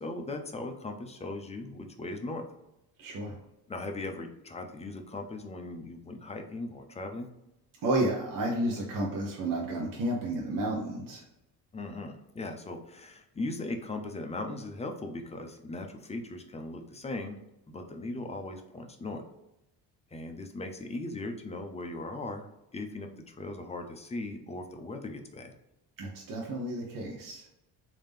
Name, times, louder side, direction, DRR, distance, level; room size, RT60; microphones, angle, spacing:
voice 1, 0.0-2.4 3.7-7.3 11.7-17.4 17.7-19.2 20.1-22.5 22.7-25.5, left 2 dB, 15° left, 5 dB, 0.5 m, -38 dB
voice 2, 3.0-3.4 7.8-11.2 26.0-27.4, right 1 dB, 55° right, -1 dB, 0.8 m, -31 dB
3.5 x 2.7 x 3.4 m, 0.89 s
cardioid pair, 105°, 38 cm